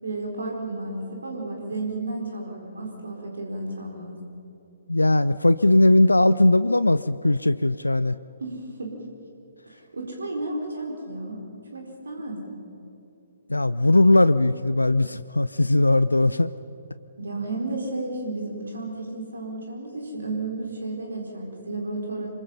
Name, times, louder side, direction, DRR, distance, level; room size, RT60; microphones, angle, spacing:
voice 1, 0.0-4.2 8.4-8.9 9.7-11.4 11.7-12.6 17.2-22.3, right 2 dB, 65° right, 0 dB, 4.5 m, -32 dB
voice 2, 4.9-8.2 13.5-16.5, left 2 dB, 80° left, 15 dB, 0.5 m, -19 dB
27.0 x 24.0 x 5.7 m, 2.9 s
figure-of-eight pair, 130°, 0 cm